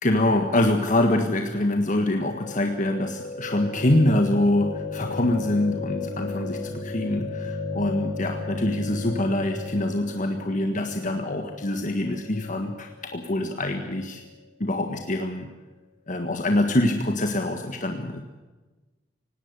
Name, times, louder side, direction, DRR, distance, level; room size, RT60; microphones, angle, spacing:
voice 1, 0.0-14.2 14.6-15.5 16.1-18.2, left 1 dB, 45° left, 4 dB, 1.6 m, -25 dB
sound 1, 2.2-14.3, left 2 dB, 65° left, 4.9 m, -35 dB
18.5 x 18.0 x 8.3 m, 1.2 s
head